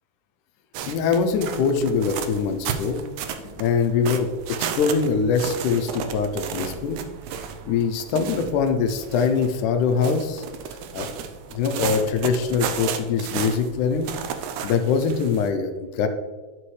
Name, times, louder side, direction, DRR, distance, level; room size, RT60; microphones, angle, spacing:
sound 1, 0.7-15.5, right 7 dB, 80° right, 1.8 m, -33 dB
voice 1, 0.9-3.0 3.4-4.3 4.8-7.0 7.7-10.4 10.9-11.1 11.5-14.1 14.6-16.1, left 5 dB, 80° left, 7 dB, 2.0 m, -23 dB
10.0 x 6.1 x 3.2 m, 1.4 s
omnidirectional pair, 3.9 m